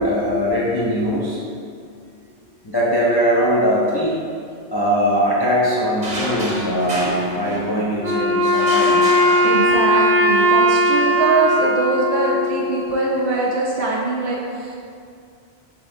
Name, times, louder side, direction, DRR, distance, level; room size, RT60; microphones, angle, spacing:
voice 1, 0.0-1.4 2.6-4.1 4.7-9.0, equal, 40° left, -7 dB, 0.3 m, -20 dB
sound 1, 6.0-8.0 8.5-10.1, right 1 dB, 40° right, 0.9 m, -29 dB
Wind instrument woodwind instrument, 8.0-13.2, equal, 80° left, 1.6 m, -18 dB
voice 2, 9.4-14.8, right 3 dB, 70° right, -3 dB, 0.8 m, -22 dB
5.9 x 3.5 x 2.6 m, 2.3 s
omnidirectional pair, 1.2 m